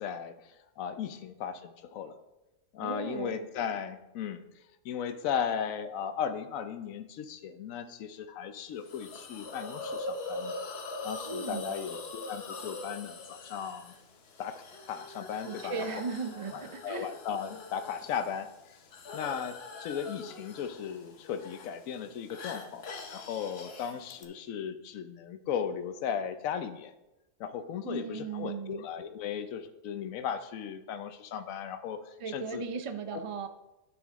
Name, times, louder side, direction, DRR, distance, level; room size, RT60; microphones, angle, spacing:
voice 1, 0.0-2.2 2.7-4.4 4.8-10.6 11.0-13.9 14.4-15.8 16.5-18.5 19.1-26.9 27.4-32.6 33.1-33.2, left 8 dB, 85° left, 10 dB, 1.1 m, -36 dB
voice 2, 2.8-3.5 11.3-11.8 15.4-17.1 27.8-28.8 32.2-33.5, right 5 dB, 45° right, 9 dB, 0.4 m, -37 dB
Hiss, 8.9-24.2, left 3 dB, 55° left, 1.1 m, -43 dB
10.5 x 6.2 x 3.6 m, 0.97 s
omnidirectional pair, 1.4 m